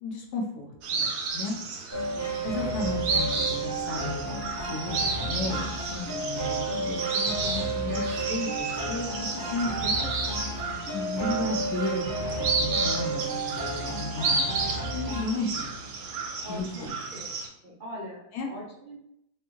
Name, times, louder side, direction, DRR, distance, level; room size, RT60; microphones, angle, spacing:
voice 1, 0.0-1.6 2.4-10.1 10.9-12.1 12.4-14.6 14.9-15.8 16.5-16.9 18.3-18.5, left 2 dB, 70° left, 0 dB, 1.2 m, -34 dB
sound 1, 0.8-17.5, right 4 dB, 90° right, 1.3 m, -32 dB
sound 2, 1.9-15.2, right 2 dB, 15° right, 0.9 m, -32 dB
sound 3, 2.8-16.9, left 1 dB, 45° left, 0.6 m, -50 dB
voice 2, 15.2-15.7 16.4-16.9 17.1-17.4 17.6-19.0, left 1 dB, 70° right, -5 dB, 0.4 m, -42 dB
4.3 x 2.3 x 3.0 m, 0.77 s
omnidirectional pair, 1.9 m